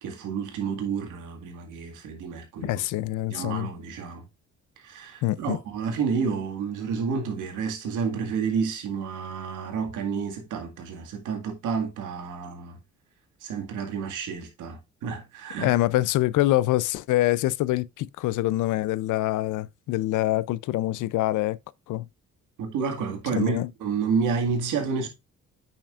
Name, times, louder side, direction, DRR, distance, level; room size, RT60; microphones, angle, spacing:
voice 1, 0.0-2.8 3.3-4.2 4.8-12.8 13.4-15.8 22.6-25.1, right 5 dB, 85° right, 2.0 m, -30 dB
voice 2, 2.6-3.7 5.2-5.6 15.6-21.6 21.9-22.1 23.3-23.7, left 16 dB, 85° left, 0.5 m, -25 dB
8.7 x 5.9 x 2.4 m
cardioid pair, 90°, 30 cm